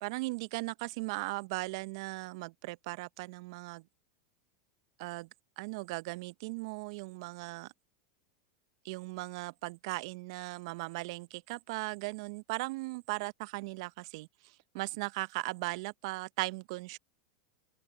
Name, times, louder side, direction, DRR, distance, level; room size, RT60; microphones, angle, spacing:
voice 1, 0.0-3.9 5.0-5.3 5.6-7.7 8.8-17.0, right 24 dB, 60° right, 0.7 m, -38 dB
open air
hypercardioid pair, 95°, 3 cm